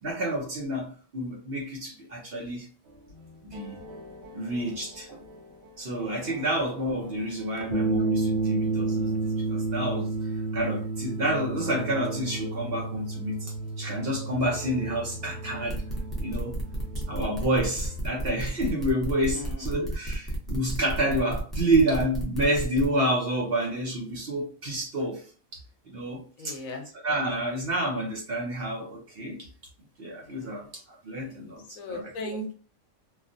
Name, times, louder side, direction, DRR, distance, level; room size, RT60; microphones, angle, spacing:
voice 1, 0.0-2.7 3.4-3.8 4.3-5.2 5.8-10.1 10.5-15.8 16.2-16.5 17.1-25.2 25.5-25.6 25.9-26.6 27.0-29.5 30.0-32.4, right 1 dB, 50° right, 0.9 m, -29 dB
sound 1, 3.1-18.0, right 3 dB, 70° right, 1.3 m, -32 dB
sound 2, 15.7-22.9, right 1 dB, ahead, 0.7 m, -33 dB
voice 2, 19.3-19.8 26.4-26.9 30.2-30.7 31.1-31.4 31.8-32.5, left 1 dB, 70° left, 1.1 m, -38 dB
3.1 x 2.3 x 2.5 m
omnidirectional pair, 1.5 m